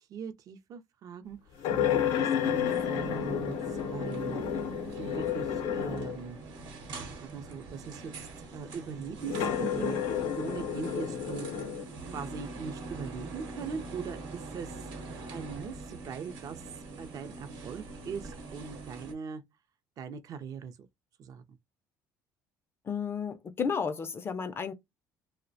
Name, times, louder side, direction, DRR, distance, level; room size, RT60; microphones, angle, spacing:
voice 1, 0.0-4.4 5.0-6.4 7.2-8.3 8.5-10.0 10.4-11.5 12.1-16.7 17.0-19.4 20.0-20.9 21.2-21.6, right 6 dB, 50° right, 0.4 m, -41 dB
sound 1, 1.6-6.3 7.0-7.1 9.2-11.8, left 8 dB, 80° left, 0.5 m, -31 dB
sound 2, 2.4-19.1, right 3 dB, 75° right, 0.9 m, -44 dB
voice 2, 22.9-24.7, left 6 dB, 30° left, 0.3 m, -32 dB
2.3 x 2.1 x 2.5 m
cardioid pair, 100°, 8 cm